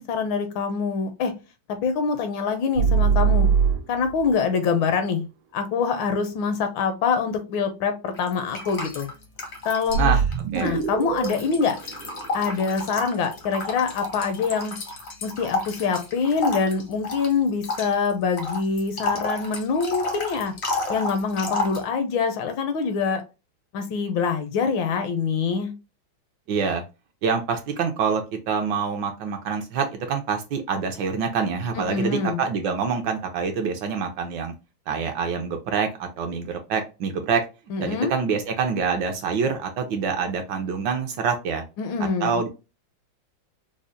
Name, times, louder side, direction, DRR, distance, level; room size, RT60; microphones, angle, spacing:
voice 1, 0.0-1.3 1.8-3.5 3.9-5.3 5.5-9.1 9.6-10.2 10.6-11.8 12.3-14.7 15.2-20.5 20.9-23.2 23.7-25.7 31.8-32.4 37.7-38.1 41.8-42.4, left 5 dB, 75° left, 8 dB, 1.3 m, -25 dB
sound 1, 2.8-4.3 9.9-13.0, right 6 dB, 90° right, 1.5 m, -23 dB
sound 2, 8.1-10.0 10.3-21.8, left 2 dB, 60° left, 0.7 m, -31 dB
voice 2, 26.5-26.8 27.2-34.5 34.9-37.5 37.8-41.6 42.0-42.5, right 6 dB, 75° right, 4 dB, 1.2 m, -26 dB
4.9 x 2.0 x 2.6 m, 0.29 s
omnidirectional pair, 2.3 m